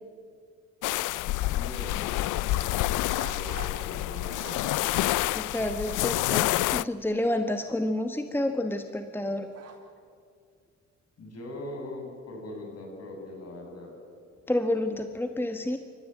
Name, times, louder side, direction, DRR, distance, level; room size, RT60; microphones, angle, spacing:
sound 1, 0.8-6.8, left 16 dB, 85° left, 0.5 m, -28 dB
voice 1, 1.5-4.6 11.2-13.9, left 1 dB, 55° left, 1 dB, 7.2 m, -41 dB
sound 2, 3.1-3.8 4.1-5.3 5.7-5.8 6.7-6.8 7.7-8.0 9.5-9.7, right 6 dB, 55° right, 4.2 m, -45 dB
voice 2, 5.3-9.5 14.5-15.8, left 1 dB, 5° left, 7 dB, 1.2 m, -29 dB
27.0 x 14.0 x 9.0 m, 2.2 s
cardioid pair, 90°, 30 cm